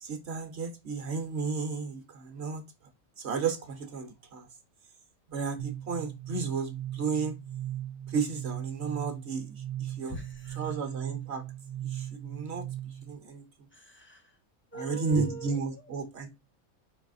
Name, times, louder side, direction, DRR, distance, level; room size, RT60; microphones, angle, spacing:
voice 1, 0.0-2.6 3.2-4.5 5.3-7.3 8.1-10.2 10.6-11.4 11.8-12.7 13.0-13.7 14.7-16.3, right 5 dB, 55° right, 1.0 m, -33 dB
sound 1, 5.6-13.1, right 12 dB, 75° right, 1.0 m, -38 dB
voice 2, 10.1-10.8 13.7-14.3 14.7-15.9, right 2 dB, 10° left, 0.6 m, -43 dB
4.9 x 4.1 x 2.4 m
omnidirectional pair, 1.5 m